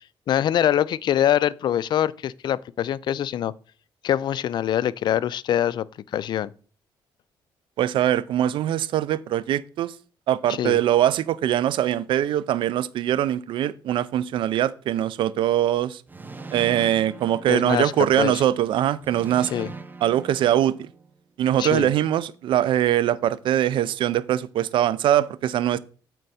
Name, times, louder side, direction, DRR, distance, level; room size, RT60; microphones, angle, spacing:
voice 1, 0.3-3.5 4.0-5.9 6.1-6.5 10.5-10.8 17.5-17.9 18.2-18.4 19.5-19.7 21.6-21.9, left 10 dB, 60° left, 0.3 m, -24 dB
voice 2, 7.8-9.9 10.3-16.0 16.5-19.5 20.0-20.9 21.4-25.8, right 11 dB, 70° right, 0.4 m, -22 dB
sound 1, 16.1-18.3 19.0-21.2, right 4 dB, 20° right, 0.7 m, -40 dB
7.6 x 4.5 x 4.1 m
cardioid pair, 90°, 9 cm